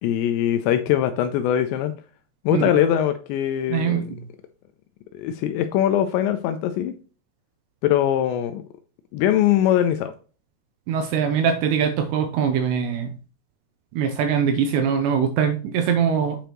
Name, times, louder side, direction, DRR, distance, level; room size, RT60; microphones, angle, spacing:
voice 1, 0.0-1.9 2.5-4.1 5.1-6.9 7.8-8.6 9.1-10.1, left 11 dB, 85° left, 8 dB, 2.6 m, -21 dB
voice 2, 3.7-4.1 10.9-13.1 13.9-16.4, right 7 dB, 85° right, 7 dB, 2.5 m, -22 dB
8.8 x 5.0 x 3.0 m, 0.39 s
omnidirectional pair, 5.5 m